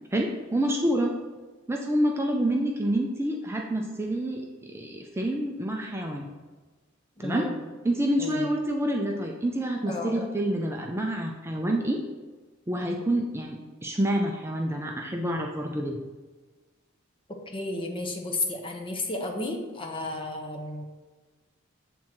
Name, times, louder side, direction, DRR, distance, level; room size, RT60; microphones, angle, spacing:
voice 1, 0.1-1.2 1.7-6.3 7.2-7.5 7.8-12.0 12.7-16.0, right 1 dB, 10° right, 1 dB, 0.4 m, -28 dB
voice 2, 7.2-7.6 8.2-8.5 9.9-10.2 17.5-20.8, left 2 dB, 25° left, 1 dB, 0.8 m, -33 dB
7.4 x 3.7 x 4.4 m, 1.3 s
head